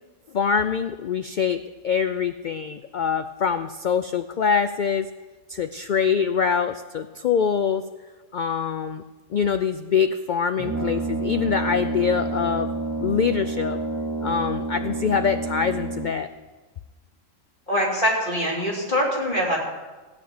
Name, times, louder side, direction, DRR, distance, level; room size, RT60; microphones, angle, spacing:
voice 1, 0.3-5.1 5.5-7.8 8.3-9.0 9.3-12.7 13.0-13.8 14.2-16.3, left 7 dB, 85° left, 9 dB, 0.4 m, -24 dB
Brass instrument, 10.6-16.3, right 3 dB, 25° right, 0.4 m, -29 dB
voice 2, 17.7-19.6, equal, 40° left, -4 dB, 3.6 m, -23 dB
16.0 x 5.3 x 9.3 m, 1.2 s
omnidirectional pair, 1.4 m